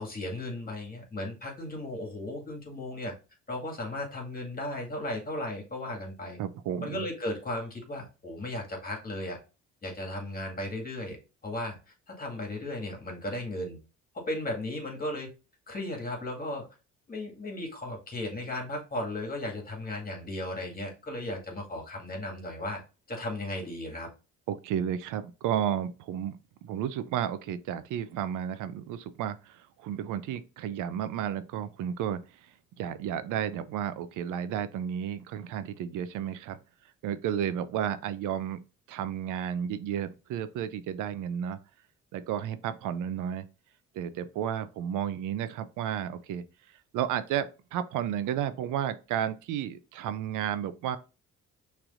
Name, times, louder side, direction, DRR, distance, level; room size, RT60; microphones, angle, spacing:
voice 1, 0.0-3.1 3.5-6.4 6.8-9.4 9.8-11.2 11.4-11.8 12.1-13.8 14.1-15.3 15.7-16.7 17.1-22.8 23.1-24.1, left 1 dB, 30° left, 2.0 m, -35 dB
voice 2, 6.4-7.1 24.5-32.5 32.8-36.6 37.0-38.6 38.9-41.6 42.1-43.4 43.9-46.4 46.9-51.0, right 9 dB, 85° right, 0.5 m, -32 dB
6.0 x 3.3 x 2.5 m
cardioid pair, 90°, 30 cm